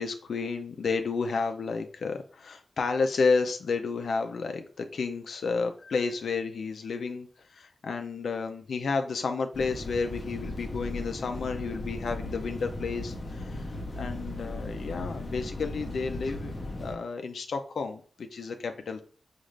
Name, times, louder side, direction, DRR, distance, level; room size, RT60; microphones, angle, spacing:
voice 1, 0.0-13.7 14.0-16.5 16.8-19.0, left 4 dB, 80° left, 6 dB, 0.4 m, -31 dB
sound 1, 9.5-16.9, left 1 dB, 40° left, 0.8 m, -37 dB
5.1 x 2.4 x 3.2 m, 0.41 s
wide cardioid pair, 145°, 0 cm